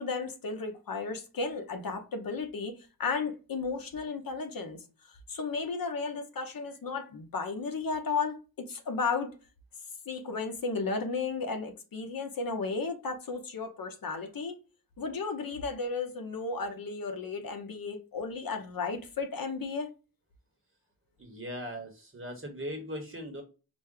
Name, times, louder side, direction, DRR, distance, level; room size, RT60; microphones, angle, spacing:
voice 1, 0.0-2.7 3.0-4.8 5.0-8.4 8.7-9.3 10.1-14.6 15.0-19.9, left 4 dB, 65° left, 0.9 m, -34 dB
voice 2, 21.2-23.4, equal, 35° right, 1.0 m, -39 dB
5.1 x 2.2 x 3.6 m
wide cardioid pair, 115°, 38 cm